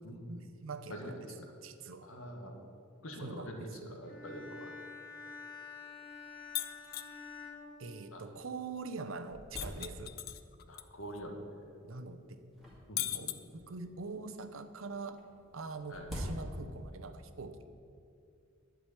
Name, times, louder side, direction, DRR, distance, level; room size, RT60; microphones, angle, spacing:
voice 1, 0.1-1.3 1.6-2.1 3.2-4.0 7.8-10.1 11.8-12.5 13.1-15.2 15.5-17.7, right 3 dB, 75° right, 9 dB, 0.7 m, -44 dB
voice 2, 0.9-1.3 2.0-2.5 3.0-4.7 8.1-8.2 10.7-11.6 12.9-13.4 15.9-16.1, equal, 85° left, 2 dB, 1.5 m, -45 dB
Bowed string instrument, 4.0-8.5, left 5 dB, 70° left, 2.9 m, -48 dB
sound 1, 6.4-6.5 6.7-6.8 7.5-7.6 8.2-8.3 8.6-10.4 11.2-11.6 12.5-13.9 15.1-16.9, equal, ahead, 2.1 m, -45 dB
sound 2, 6.5-7.1 9.6-10.8 11.2-11.3 13.0-13.9, left 13 dB, 50° left, 0.4 m, -37 dB
11.0 x 4.9 x 8.2 m, 2.5 s
head